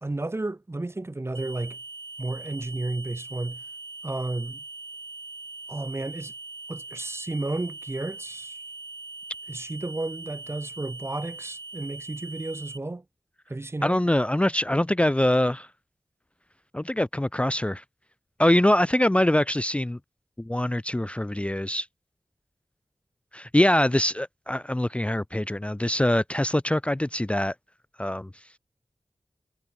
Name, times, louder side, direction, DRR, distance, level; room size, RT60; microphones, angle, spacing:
voice 1, 0.0-1.8 2.2-3.6 4.0-4.6 5.7-6.3 6.7-8.6 9.5-13.0 13.5-14.0, right 2 dB, 25° right, 1.0 m, -32 dB
sound 1, 1.3-12.8, right 3 dB, 50° right, 3.6 m, -41 dB
voice 2, 13.8-15.7 16.7-17.8 18.4-20.0 20.4-21.9 23.3-27.5 28.0-28.3, left 1 dB, 15° left, 0.6 m, -23 dB
wide cardioid pair, 90°, 9 cm